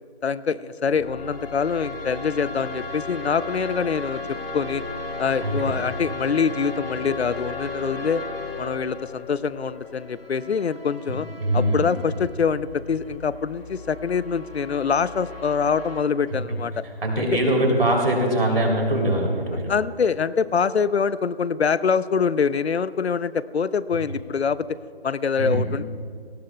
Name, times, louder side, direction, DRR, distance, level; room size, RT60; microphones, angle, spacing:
voice 1, 0.2-4.8 5.2-8.2 8.6-11.3 11.5-16.8 19.7-24.7 25.0-25.8, left 6 dB, 90° left, 17 dB, 0.6 m, -24 dB
sound 1, 0.9-16.0, left 3 dB, 65° left, 1.9 m, -35 dB
voice 2, 5.4-5.8 11.4-11.9 16.8-19.7 25.4-25.6, right 1 dB, 65° right, 0 dB, 3.1 m, -22 dB
19.5 x 17.5 x 2.2 m, 2.1 s
figure-of-eight pair, 175°, 31 cm